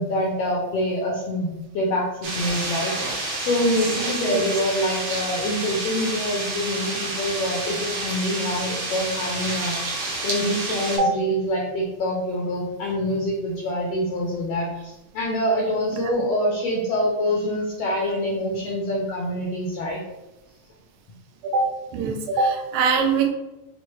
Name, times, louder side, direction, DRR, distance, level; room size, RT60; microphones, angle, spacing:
voice 1, 0.0-9.8 10.2-20.0, equal, 75° left, -2 dB, 1.5 m, -25 dB
sound 1, 2.2-11.0, right 2 dB, 65° right, 1.6 m, -29 dB
voice 2, 21.9-23.3, right 4 dB, 80° right, 3 dB, 1.6 m, -22 dB
6.2 x 2.1 x 3.1 m, 0.99 s
omnidirectional pair, 3.5 m